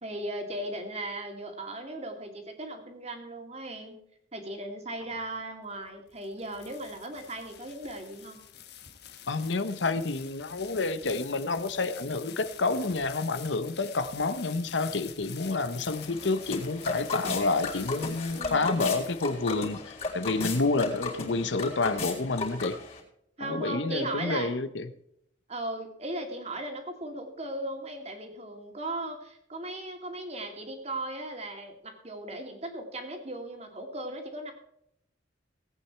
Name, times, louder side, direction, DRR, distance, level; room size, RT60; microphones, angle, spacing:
voice 1, 0.0-4.0 4.3-8.4 18.3-18.9 23.4-24.5 25.5-34.5, right 1 dB, 35° right, 5 dB, 2.4 m, -37 dB
sound 1, 5.9-19.7, left 10 dB, 55° left, 1.3 m, -47 dB
voice 2, 9.3-22.8 23.4-24.9, left 3 dB, 70° left, 13 dB, 0.9 m, -29 dB
sound 2, 15.9-23.0, left 3 dB, 30° left, 3.8 m, -35 dB
18.0 x 8.8 x 4.4 m, 0.77 s
head